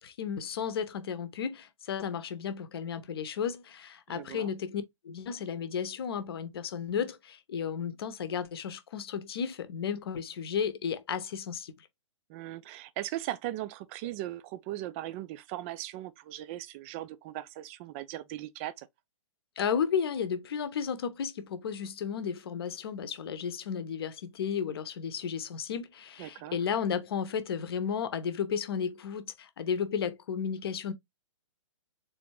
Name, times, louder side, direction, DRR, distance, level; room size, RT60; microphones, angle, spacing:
voice 1, 0.0-11.9 19.6-30.9, left 7 dB, 50° left, 0.8 m, -33 dB
voice 2, 4.1-4.5 12.3-18.9 26.2-26.6, right 14 dB, 25° right, 0.4 m, -38 dB
3.9 x 3.4 x 3.0 m
figure-of-eight pair, 120°, 17 cm